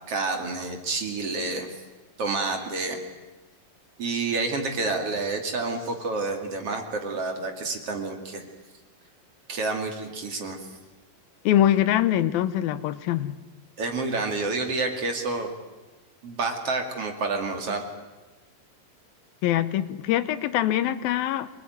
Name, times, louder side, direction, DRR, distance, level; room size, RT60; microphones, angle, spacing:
voice 1, 0.1-1.7 2.2-3.0 4.0-8.5 9.5-10.7 13.8-15.5 16.2-17.8, right 3 dB, 45° right, 4 dB, 3.1 m, -29 dB
voice 2, 11.5-13.4 19.4-21.5, left 12 dB, 80° left, 14 dB, 2.7 m, -23 dB
27.0 x 20.0 x 9.4 m, 1.2 s
omnidirectional pair, 4.2 m